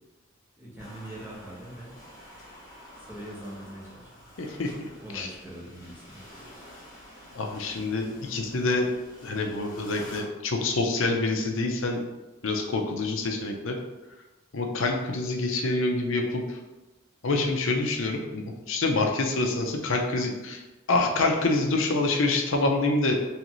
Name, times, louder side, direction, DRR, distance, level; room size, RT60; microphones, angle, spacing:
voice 1, 0.6-2.0 3.0-4.2 5.0-6.5, right 1 dB, 10° right, -6 dB, 0.9 m, -42 dB
sound 1, 0.8-10.2, equal, 20° left, 1.1 m, -49 dB
voice 2, 4.4-4.7 5.1-5.3 7.3-8.9 9.2-12.0 12.4-13.8 14.5-16.6 17.2-20.6 20.9-23.2, left 2 dB, 70° left, 2 dB, 0.6 m, -26 dB
3.9 x 3.2 x 3.1 m, 1.1 s
head